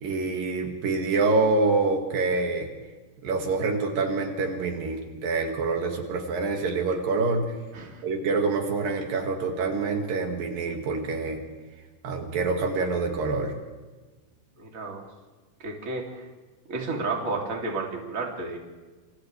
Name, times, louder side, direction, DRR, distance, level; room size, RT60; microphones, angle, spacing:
voice 1, 0.0-2.7 3.2-7.5 8.0-11.4 12.0-13.5, right 3 dB, 75° right, 2 dB, 3.9 m, -26 dB
voice 2, 14.6-15.0 15.6-16.3 16.7-18.6, right 3 dB, 25° right, -1 dB, 3.1 m, -32 dB
27.5 x 27.5 x 3.4 m, 1.3 s
omnidirectional pair, 4.0 m